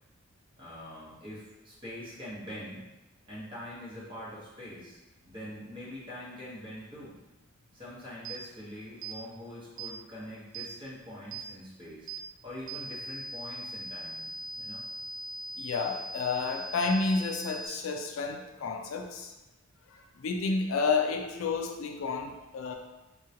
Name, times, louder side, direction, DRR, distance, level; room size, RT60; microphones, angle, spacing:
voice 1, 0.6-2.9 3.3-5.0 5.2-7.2 7.7-12.1 12.4-14.3 14.6-14.8, left 1 dB, 25° right, -8 dB, 1.1 m, -44 dB
sound 1, 8.2-8.4 9.0-9.2 9.8-9.9 10.5-10.7 11.3-11.5 12.1-12.2 12.7-17.7, right 2 dB, 65° right, 0.4 m, -40 dB
voice 2, 15.6-19.3 19.9-22.8, left 4 dB, 80° left, 4 dB, 0.4 m, -30 dB
3.6 x 2.2 x 2.8 m, 1.0 s
head